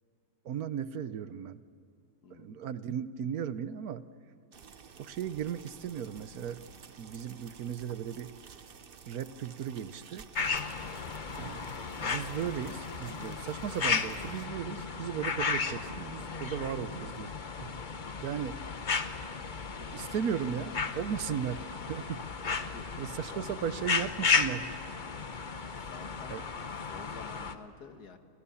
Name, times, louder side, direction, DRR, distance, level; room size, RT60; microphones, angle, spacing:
voice 1, 0.4-1.6 2.3-4.1 5.0-6.6 7.0-8.3 9.1-10.3 11.4-11.6 12.0-17.3 17.6-17.7 18.2-18.8 19.8-22.3 23.0-24.7 26.3-26.4, right 8 dB, 70° right, 14 dB, 1.3 m, -36 dB
voice 2, 2.2-2.6 22.5-23.7 25.8-26.4 26.8-28.2, left 5 dB, 85° left, 7 dB, 2.1 m, -50 dB
sound 1, 4.5-14.5, right 6 dB, 45° right, 1.0 m, -52 dB
sound 2, 10.4-27.5, left 5 dB, 35° left, 1.0 m, -34 dB
29.5 x 28.5 x 7.1 m, 2.4 s
omnidirectional pair, 1.6 m